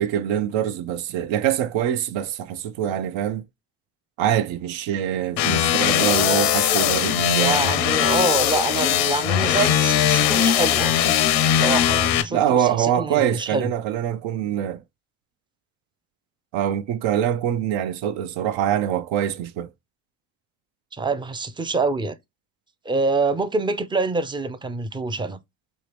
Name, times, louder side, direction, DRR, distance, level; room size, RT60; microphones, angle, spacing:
voice 1, 0.0-3.5 4.2-7.6 12.3-14.8 16.5-19.7, right 10 dB, 65° right, 0.6 m, -24 dB
sound 1, 5.4-12.2, left 10 dB, 90° left, 0.7 m, -20 dB
voice 2, 7.4-11.1 11.5-13.7 20.9-22.2 22.8-25.4, right 3 dB, 10° right, 0.4 m, -26 dB
3.1 x 2.8 x 3.2 m
hypercardioid pair, 60°, 50 cm